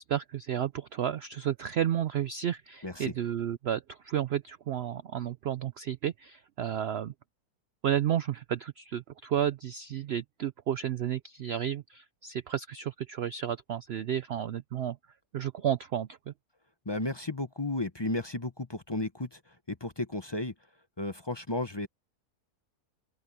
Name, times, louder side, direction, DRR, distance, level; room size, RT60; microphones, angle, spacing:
voice 1, 0.0-7.1 7.8-15.0 15.3-16.3, right 10 dB, 75° right, 0.5 m, -32 dB
voice 2, 16.9-19.4 19.7-20.5 21.0-21.9, left 2 dB, 20° left, 0.7 m, -33 dB
open air
omnidirectional pair, 1.7 m